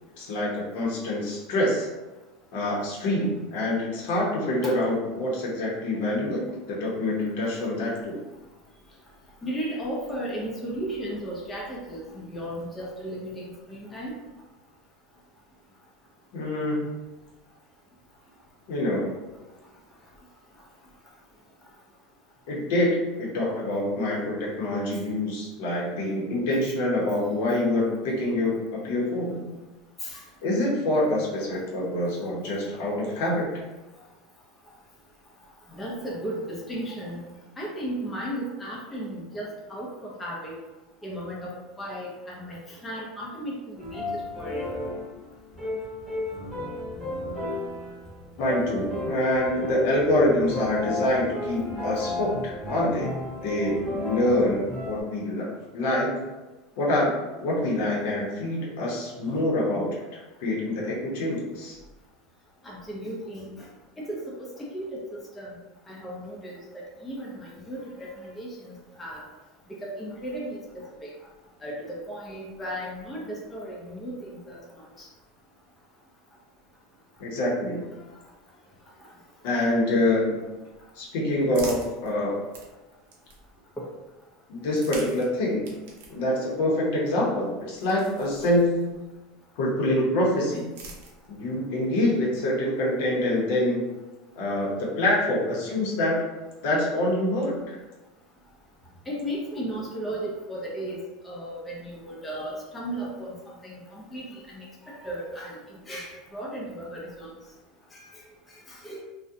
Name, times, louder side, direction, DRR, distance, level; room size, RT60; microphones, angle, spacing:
voice 1, 0.2-1.9 2.5-8.2 16.3-17.0 18.7-19.2 22.5-29.5 30.4-33.5 48.4-53.2 53.4-56.2 56.8-57.1 57.4-61.8 77.2-77.9 79.4-80.4 80.9-82.5 84.5-85.7 86.1-89.0 89.6-90.7 91.3-93.9 94.3-96.2 96.6-97.8, left 1 dB, 70° left, -4 dB, 0.7 m, -26 dB
voice 2, 9.4-14.1 30.0-30.2 35.7-37.2 37.6-40.6 41.0-44.7 51.5-51.6 62.6-63.7 64.0-65.6 65.9-69.2 69.7-71.1 71.6-75.1 83.8-83.9 99.1-105.6 105.9-107.3 107.9-108.0 108.5-109.0, right 1 dB, 15° left, -4 dB, 0.5 m, -35 dB
sound 1, 43.8-55.0, left 1 dB, 5° right, 0.9 m, -33 dB
sound 2, 80.8-83.7 84.6-89.2 90.1-91.6, right 3 dB, 75° right, 0.6 m, -46 dB
2.4 x 2.1 x 2.6 m, 1.1 s
supercardioid pair, 140°, 0 cm